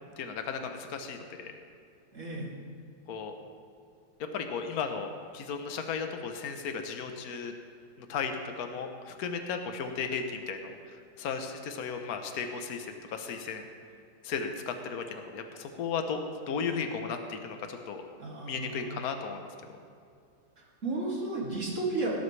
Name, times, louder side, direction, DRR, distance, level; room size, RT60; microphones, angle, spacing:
voice 1, 0.2-1.5 3.1-3.3 4.3-7.5 8.0-10.7 11.2-13.7 14.2-16.2 16.5-18.0 18.5-19.5, left 5 dB, 55° left, 6 dB, 1.4 m, -35 dB
voice 2, 2.1-2.5 18.2-19.0 20.6-22.1, right 2 dB, 40° right, -4 dB, 2.9 m, -34 dB
17.5 x 12.5 x 3.3 m, 2.4 s
omnidirectional pair, 2.0 m